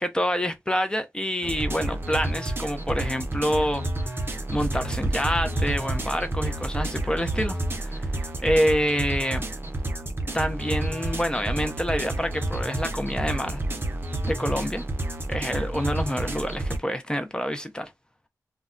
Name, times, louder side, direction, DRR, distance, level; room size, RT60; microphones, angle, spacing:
voice 1, 0.0-8.1 8.4-9.5 10.3-13.6 14.2-14.8 15.3-17.9, equal, 15° left, 0.5 m, -27 dB
sound 1, 1.4-16.8, right 2 dB, 35° right, 0.6 m, -29 dB
2.2 x 2.1 x 3.6 m
wide cardioid pair, 85°, 6 cm